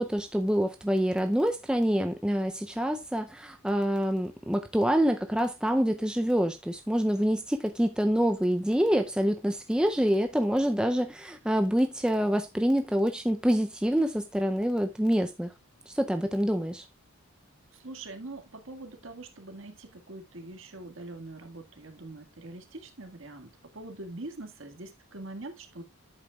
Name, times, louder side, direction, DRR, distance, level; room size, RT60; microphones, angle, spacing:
voice 1, 0.0-15.5 15.9-16.9, equal, 5° right, 0.5 m, -26 dB
voice 2, 17.7-25.8, right 2 dB, 60° right, 1.8 m, -43 dB
10.5 x 8.3 x 2.3 m
head